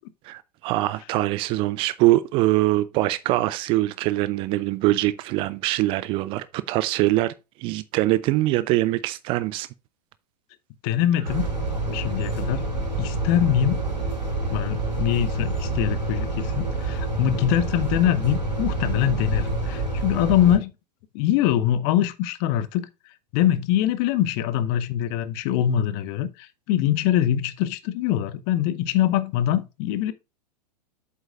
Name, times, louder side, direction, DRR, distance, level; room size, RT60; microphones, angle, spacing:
voice 1, 0.3-7.3 7.6-9.7, right 17 dB, 25° right, 0.4 m, -23 dB
voice 2, 10.8-11.5 11.9-12.7 13.0-13.8 14.5-20.7 21.1-22.9 23.3-30.1, left 11 dB, 35° left, 0.8 m, -23 dB
sound 1, 11.2-20.6, right 2 dB, 85° right, 3.5 m, -27 dB
8.1 x 7.9 x 2.4 m
figure-of-eight pair, 100°, 21 cm